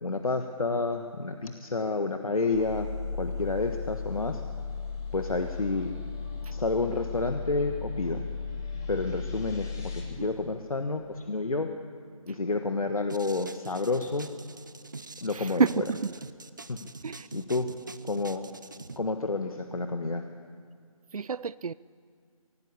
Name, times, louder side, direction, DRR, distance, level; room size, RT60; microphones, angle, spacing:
voice 1, 0.0-2.9 3.2-4.4 5.1-5.9 6.5-8.2 8.9-11.7 12.3-14.3 15.2-15.8 16.7-16.8 17.3-17.7 18.1-18.4 19.0-20.2, left 3 dB, 70° left, 6 dB, 1.4 m, -30 dB
sound 1, 2.5-10.0, left 5 dB, 5° left, 0.8 m, -35 dB
sound 2, 13.1-19.0, right 3 dB, 35° right, 0.7 m, -44 dB
voice 2, 15.3-16.1 17.0-17.3 21.1-21.7, right 5 dB, 75° right, 18 dB, 0.5 m, -29 dB
24.0 x 16.5 x 8.5 m, 2.2 s
figure-of-eight pair, 175°, 19 cm